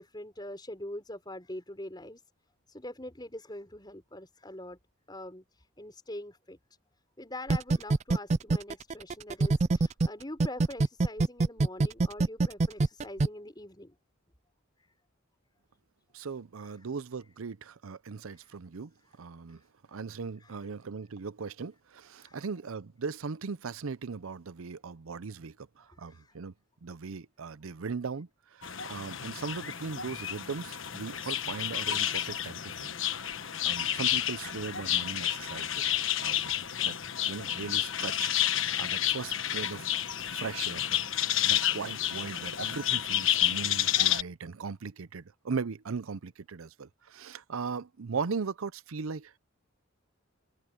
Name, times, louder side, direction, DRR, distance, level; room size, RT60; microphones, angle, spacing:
voice 1, 0.0-2.2 2.7-4.8 5.1-6.6 7.2-14.0 14.8-14.9 16.6-16.7 18.2-18.5 19.5-19.6 20.4-20.6 22.2-22.4 25.9-26.4, left 1 dB, 20° left, 4.9 m, -44 dB
sound 1, 7.5-10.1 10.4-13.3, right 3 dB, 35° right, 0.4 m, -24 dB
voice 2, 16.1-18.9 19.2-19.6 19.9-26.5 26.8-32.9 33.7-35.9 36.2-36.6 36.8-37.0 37.3-39.9 40.3-41.0 41.4-49.4, right 5 dB, 90° right, 0.6 m, -38 dB
sound 2, 28.6-44.2, left 11 dB, 70° left, 1.3 m, -30 dB
open air
head